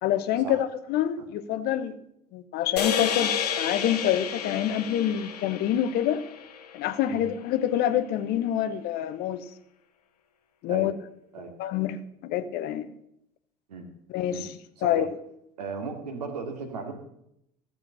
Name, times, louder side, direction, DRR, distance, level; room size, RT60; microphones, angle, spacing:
voice 1, 0.0-1.9 2.3-6.2 6.7-9.4 10.6-10.9 11.6-12.9 14.1-14.5 14.8-15.1, left 11 dB, 50° left, 1.0 m, -26 dB
sound 1, 2.8-7.2, left 8 dB, 75° left, 1.1 m, -31 dB
voice 2, 15.6-16.9, right 5 dB, 75° right, 2.4 m, -36 dB
14.5 x 7.3 x 6.6 m
figure-of-eight pair, 65°, 20 cm